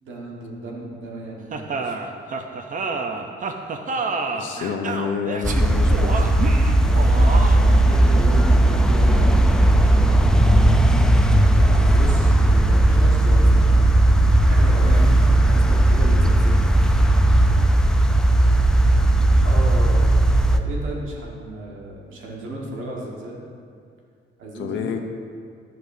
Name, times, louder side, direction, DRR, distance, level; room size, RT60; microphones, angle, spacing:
voice 1, 0.0-1.9 6.8-10.7 11.5-13.8 14.5-16.7 19.4-20.1 20.5-23.4 24.4-25.0, right 1 dB, 85° right, -2 dB, 1.5 m, -34 dB
sound 1, 1.5-7.8, right 4 dB, 40° right, 0.7 m, -28 dB
voice 2, 4.4-6.3 24.5-25.0, left 6 dB, 75° left, 4 dB, 0.7 m, -28 dB
sound 2, 5.4-20.6, right 1 dB, 5° left, 0.4 m, -16 dB
11.0 x 6.7 x 2.7 m, 2.2 s
cardioid pair, 90°, 20 cm